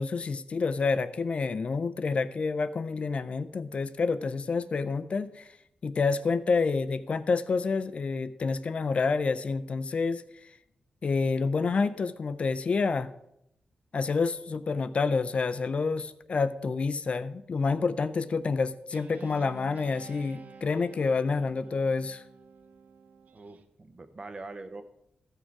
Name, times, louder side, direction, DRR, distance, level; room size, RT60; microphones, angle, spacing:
voice 1, 0.0-5.5 5.8-10.2 11.0-13.1 13.9-22.2, left 4 dB, 45° left, 13 dB, 0.4 m, -28 dB
Guitar, 18.9-23.7, right 5 dB, 70° right, 0.6 m, -50 dB
voice 2, 23.3-24.8, right 3 dB, 35° right, 9 dB, 0.8 m, -43 dB
14.5 x 6.3 x 4.7 m, 0.78 s
wide cardioid pair, 155°, 3 cm